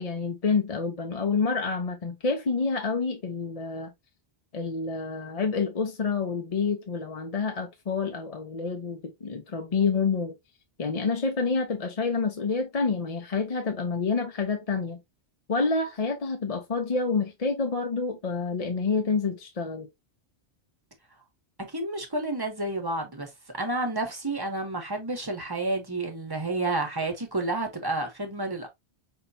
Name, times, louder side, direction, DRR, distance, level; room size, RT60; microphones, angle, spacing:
voice 1, 0.0-3.9 4.5-10.3 10.8-15.0 15.5-19.9, left 4 dB, 40° left, 0.7 m, -28 dB
voice 2, 21.7-23.3 23.5-28.7, right 2 dB, 20° right, 1.1 m, -30 dB
5.4 x 3.0 x 2.7 m
omnidirectional pair, 1.1 m